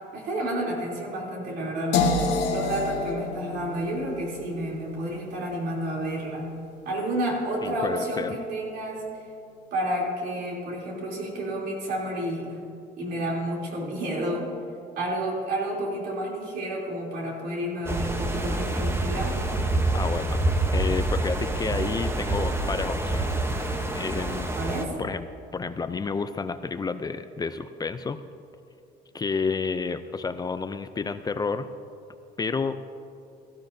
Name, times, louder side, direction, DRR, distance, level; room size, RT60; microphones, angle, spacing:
voice 1, 0.1-2.2 2.5-6.5 6.8-9.2 9.7-12.6 13.0-14.5 15.0-19.4 24.2-25.0, right 1 dB, 75° right, -3 dB, 3.1 m, -30 dB
sound 1, 1.9-7.8, left 4 dB, 90° left, 1.5 m, -30 dB
voice 2, 7.6-8.4 19.9-20.4 20.7-23.3 23.9-24.6 25.0-25.2 25.5-28.2 29.1-31.7 32.4-32.8, left 4 dB, 25° left, 11 dB, 0.4 m, -30 dB
sound 2, 17.9-24.9, right 2 dB, 15° right, 0.9 m, -27 dB
16.0 x 14.0 x 2.7 m, 2.5 s
cardioid pair, 110°, 17 cm